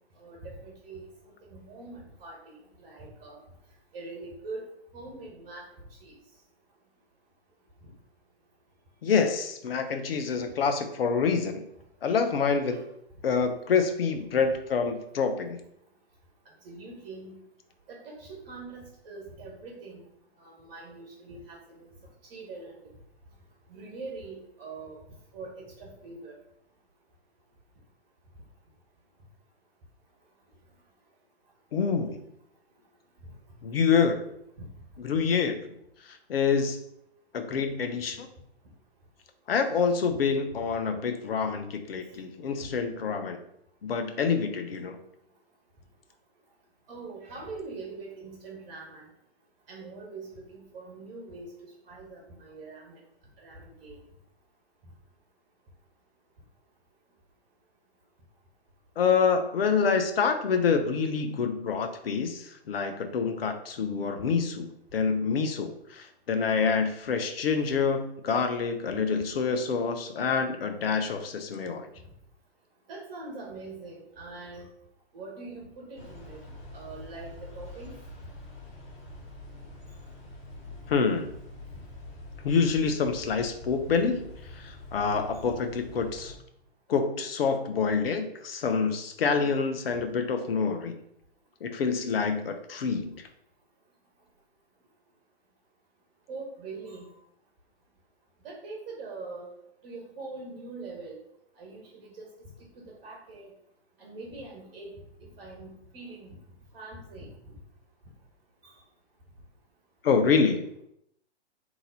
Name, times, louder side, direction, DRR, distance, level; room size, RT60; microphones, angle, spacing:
voice 1, 0.2-1.1 1.4-3.4 3.9-5.6 6.0-6.2 12.7-12.8 16.6-17.4 17.9-20.0 20.4-21.9 22.3-22.8 23.7-25.0 25.3-26.4 46.9-49.1 49.7-53.0 53.4-54.0 72.9-74.7 75.1-76.4 76.7-77.9 85.3-85.4 96.3-97.1 98.4-99.5 99.8-101.2 101.6-102.2 102.7-103.5 104.0-106.4 106.7-107.3 108.6-108.7, right 3 dB, 40° right, -2 dB, 1.2 m, -43 dB
voice 2, 9.0-11.7 12.0-12.8 13.2-15.6 31.7-32.2 33.6-34.2 35.0-35.6 36.0-36.8 37.3-38.3 39.5-43.4 43.8-45.0 59.0-71.9 80.9-81.3 82.4-84.2 84.5-86.3 86.9-90.9 91.6-93.1 110.0-110.6, left 5 dB, 60° left, 7 dB, 0.7 m, -27 dB
sound 1, 75.9-86.4, left 1 dB, 40° left, 1.5 m, -45 dB
3.9 x 2.9 x 4.0 m, 0.74 s
figure-of-eight pair, 115°, 33 cm